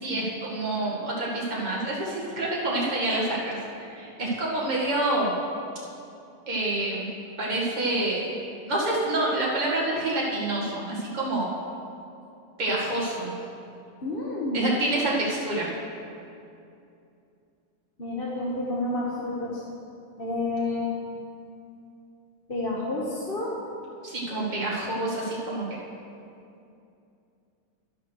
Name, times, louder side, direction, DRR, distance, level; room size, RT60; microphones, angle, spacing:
voice 1, 0.0-5.4 6.5-7.1 7.4-11.5 12.6-13.3 14.5-15.7 24.0-25.8, right 2 dB, 25° right, -6 dB, 2.0 m, -27 dB
voice 2, 14.0-14.7 18.0-19.6 20.2-20.9 22.5-23.5, left 2 dB, 35° left, -5 dB, 1.2 m, -29 dB
11.0 x 6.7 x 6.4 m, 2.6 s
omnidirectional pair, 1.9 m